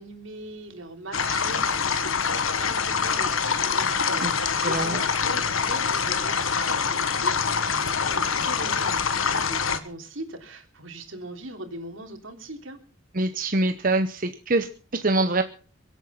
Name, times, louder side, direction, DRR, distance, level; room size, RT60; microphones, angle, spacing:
voice 1, 0.0-12.8, right 1 dB, 75° right, 5 dB, 3.4 m, -40 dB
sound 1, 1.1-9.8, left 6 dB, 85° left, 1.5 m, -25 dB
voice 2, 4.2-5.0 13.1-15.4, right 2 dB, 40° right, 8 dB, 0.9 m, -25 dB
23.5 x 9.2 x 5.9 m, 0.40 s
head